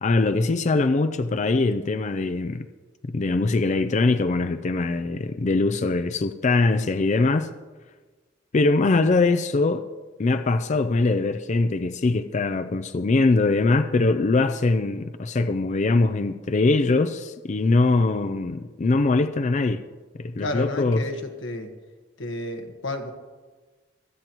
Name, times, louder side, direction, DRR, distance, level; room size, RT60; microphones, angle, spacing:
voice 1, 0.0-2.7 3.1-7.5 8.5-9.8 10.2-19.8 20.2-21.0, left 3 dB, 40° left, 10 dB, 0.4 m, -22 dB
voice 2, 20.4-21.7 22.2-23.1, left 1 dB, 85° left, 5 dB, 1.4 m, -31 dB
25.5 x 9.4 x 3.0 m, 1.3 s
head